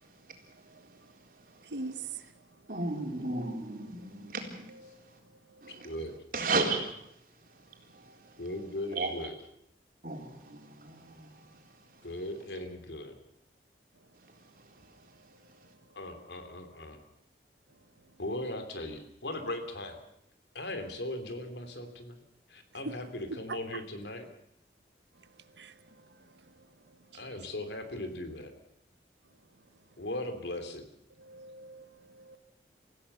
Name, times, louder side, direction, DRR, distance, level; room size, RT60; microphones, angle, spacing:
voice 1, 1.7-2.2 3.3-3.5 4.7-5.0 5.5-5.7 22.8-23.0 23.5-23.6 25.6-25.7 27.1-27.3 31.2-32.4, right 3 dB, 85° right, 1.1 m, -42 dB
voice 2, 2.7-4.7 5.6-5.9 6.3-6.9 7.9-8.1 8.9-9.1 10.0-11.4, right 3 dB, 50° right, 3.9 m, -34 dB
voice 3, 5.6-6.2 8.4-9.4 12.0-13.1 15.9-17.0 18.2-20.0 20.5-22.2 22.5-24.3 27.1-28.5 30.0-30.9, left 1 dB, 80° left, 3.1 m, -38 dB
26.0 x 15.5 x 7.0 m
head